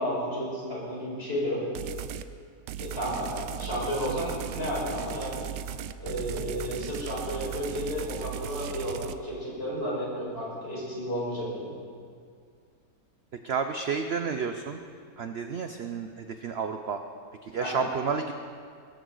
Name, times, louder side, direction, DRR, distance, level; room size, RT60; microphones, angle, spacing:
voice 1, 0.0-1.6 2.8-5.4 6.0-11.7 17.6-17.9, equal, 35° left, -6 dB, 5.3 m, -32 dB
sound 1, 1.8-2.3 2.7-9.1, right 9 dB, 85° right, 1.3 m, -37 dB
voice 2, 13.4-14.8 15.2-17.0 17.4-18.3, right 6 dB, 60° right, 6 dB, 0.6 m, -31 dB
22.0 x 14.5 x 3.9 m, 2.2 s
omnidirectional pair, 1.8 m